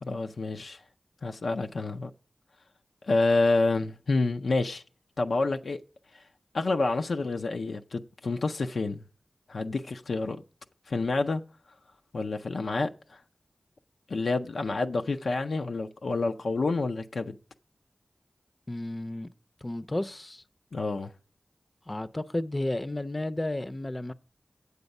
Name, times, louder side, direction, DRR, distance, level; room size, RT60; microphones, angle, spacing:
voice 1, 0.0-0.8 1.2-2.1 3.0-4.8 5.2-5.8 6.1-6.2 6.5-9.0 9.5-10.4 10.9-11.4 12.1-13.2 14.1-17.4 20.7-21.1, left 3 dB, 85° left, 0.4 m, -28 dB
voice 2, 18.7-19.3 19.6-20.4 21.9-24.1, left 1 dB, 30° left, 0.5 m, -32 dB
8.1 x 7.8 x 5.3 m
cardioid pair, 45°, 0 cm